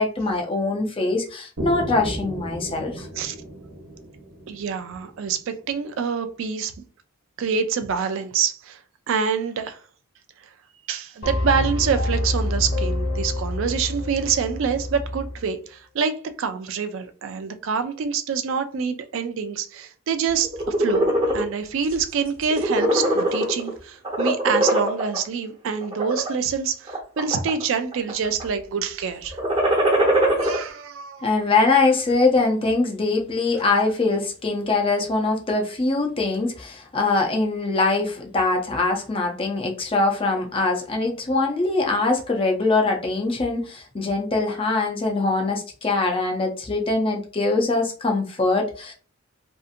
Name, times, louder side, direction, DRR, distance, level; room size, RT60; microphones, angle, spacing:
voice 1, 0.0-3.1 31.2-48.9, left 3 dB, 25° left, 0.5 m, -23 dB
sound 1, 1.6-5.5, right 1 dB, 85° right, 0.9 m, -35 dB
voice 2, 4.5-6.7 7.4-8.8 9.1-9.8 10.4-10.5 10.9-29.4 30.4-31.3, right 6 dB, 60° right, 0.3 m, -26 dB
sound 2, 11.2-15.4, left 1 dB, 50° left, 1.0 m, -27 dB
sound 3, 20.4-21.4 21.9-22.1 22.4-23.7 24.0-25.2 25.8-26.3 26.9-27.6 27.9-28.4 29.3-30.6, right 1 dB, 25° right, 0.8 m, -21 dB
2.6 x 2.5 x 2.4 m
head